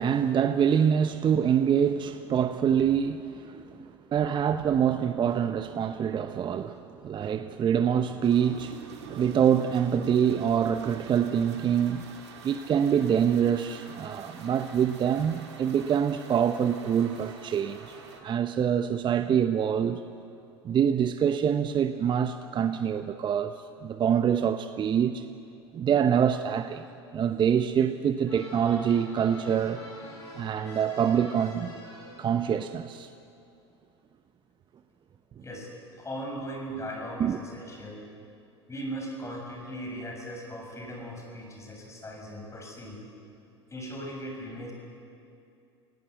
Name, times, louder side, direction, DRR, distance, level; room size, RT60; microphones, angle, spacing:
voice 1, 0.0-12.1 12.4-17.9 18.2-20.0 20.6-25.2 25.7-26.8 27.1-29.8 30.3-31.7 32.2-33.1 37.2-37.4, right 8 dB, 35° right, 0.9 m, -25 dB
sound 1, 8.2-18.2, right 5 dB, 75° right, 2.6 m, -46 dB
sound 2, 28.3-32.5, left 2 dB, 85° left, 7.3 m, -45 dB
voice 2, 36.0-38.0 38.7-43.0 43.7-44.7, equal, 20° left, 6.6 m, -38 dB
27.0 x 17.0 x 8.0 m
hypercardioid pair, 75°, 14 cm